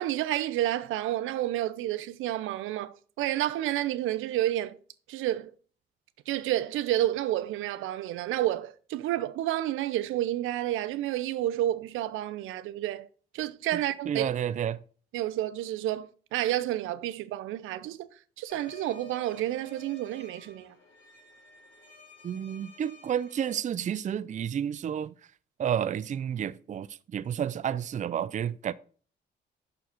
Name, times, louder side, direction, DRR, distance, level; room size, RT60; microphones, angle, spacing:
voice 1, 0.0-4.8 5.1-5.5 6.3-13.1 13.3-14.3 15.1-18.1 18.4-20.7, right 13 dB, 90° right, 0.7 m, -30 dB
voice 2, 13.7-14.8 22.2-25.1 25.6-28.7, right 9 dB, 40° right, 0.5 m, -31 dB
sound 1, 18.5-23.5, left 5 dB, 75° left, 4.0 m, -52 dB
7.0 x 6.5 x 5.9 m
cardioid pair, 90°, 20 cm